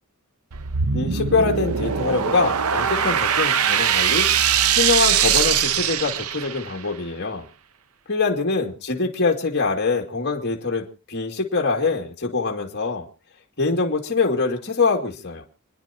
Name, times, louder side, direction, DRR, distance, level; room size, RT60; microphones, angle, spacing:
sound 1, 0.5-6.8, right 8 dB, 85° right, 0.8 m, -21 dB
voice 1, 0.9-4.3 4.7-7.4 8.1-13.1 13.6-15.4, left 4 dB, 55° left, 1 dB, 2.4 m, -24 dB
29.5 x 10.5 x 2.9 m, 0.33 s
head